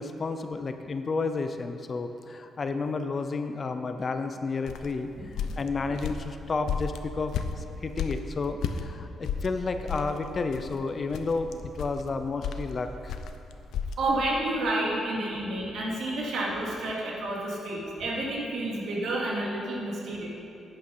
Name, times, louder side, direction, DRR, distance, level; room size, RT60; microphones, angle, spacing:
voice 1, 0.0-5.1 5.4-13.1, left 4 dB, 30° left, 8 dB, 0.5 m, -31 dB
sound 1, 4.6-8.8 9.2-14.0, left 7 dB, 85° left, 0.6 m, -33 dB
voice 2, 14.0-20.3, right 1 dB, 60° right, -3 dB, 2.6 m, -30 dB
11.0 x 9.2 x 5.5 m, 2.8 s
cardioid pair, 175°, 0 cm